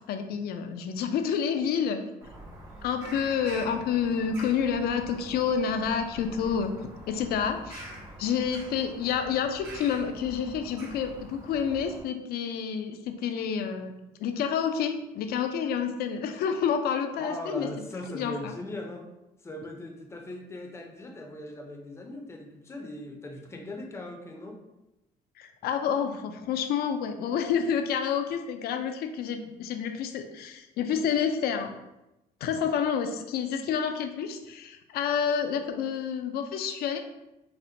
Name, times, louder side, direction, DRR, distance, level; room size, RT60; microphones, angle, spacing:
voice 1, 0.0-2.0 2.8-6.7 7.1-7.9 8.2-13.9 14.2-17.7 18.1-18.5 25.4-31.7 32.4-37.0, left 7 dB, 70° left, 7 dB, 0.4 m, -29 dB
Bird vocalization bird call bird song, 2.2-12.0, right 1 dB, 75° right, 1.2 m, -45 dB
voice 2, 17.2-19.0 19.4-24.6, left 1 dB, 15° left, 2 dB, 0.5 m, -39 dB
4.1 x 2.1 x 2.6 m, 0.94 s
cardioid pair, 110°, 17 cm